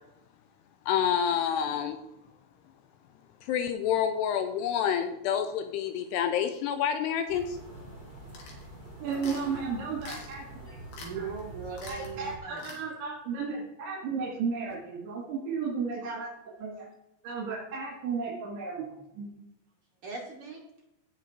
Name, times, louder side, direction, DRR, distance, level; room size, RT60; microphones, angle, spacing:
voice 1, 0.9-2.0 3.4-7.6, left 8 dB, 80° left, 7 dB, 2.7 m, -28 dB
sound 1, 7.3-12.4, right 1 dB, 20° left, 1.3 m, -45 dB
sound 2, 8.3-8.7 9.2-9.5 10.0-10.4 10.9-11.1 11.4-11.5 11.8-12.1 12.6-12.8, left 3 dB, 65° left, 3.9 m, -45 dB
voice 2, 9.0-10.8 11.2-11.3 11.9-16.3 16.6-16.9 17.2-18.8 19.2-19.4, right 5 dB, 80° right, -4 dB, 4.4 m, -34 dB
voice 3, 11.0-12.8 20.0-20.6, right 5 dB, 60° right, -1 dB, 1.4 m, -39 dB
17.0 x 5.8 x 4.5 m, 0.87 s
omnidirectional pair, 5.0 m